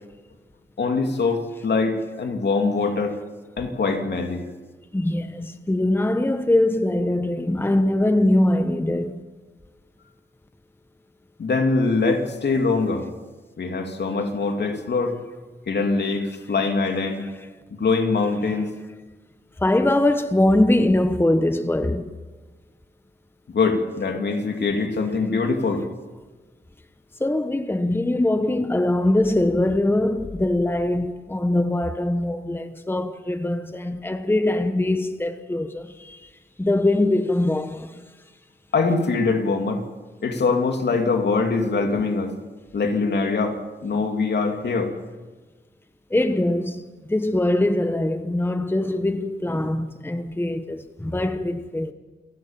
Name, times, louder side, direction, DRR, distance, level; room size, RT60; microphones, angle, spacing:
voice 1, 0.8-3.2 3.6-4.4 11.4-13.0 13.6-15.2 15.7-17.2 17.7-18.7 23.5-25.9 38.7-39.8 40.2-42.3 42.7-44.9, left 4 dB, 65° left, 2.7 m, -23 dB
voice 2, 4.9-9.1 19.6-22.1 27.2-36.2 36.6-37.9 46.1-46.8 47.1-51.9, left 1 dB, 10° left, 1.1 m, -22 dB
28.5 x 12.0 x 7.5 m
cardioid pair, 80°, 19 cm